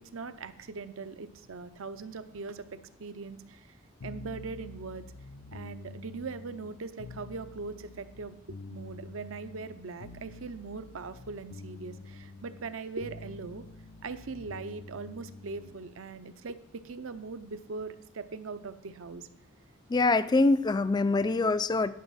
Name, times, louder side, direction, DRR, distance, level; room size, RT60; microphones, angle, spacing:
voice 1, 0.0-2.7 3.0-3.6 4.0-5.0 5.5-13.6 14.0-19.3, right 4 dB, 65° right, 12 dB, 0.6 m, -40 dB
sound 1, 4.0-15.9, left 3 dB, 85° left, 0.6 m, -47 dB
voice 2, 19.9-21.9, left 3 dB, 20° left, 14 dB, 0.3 m, -24 dB
10.5 x 6.0 x 5.6 m, 0.77 s
head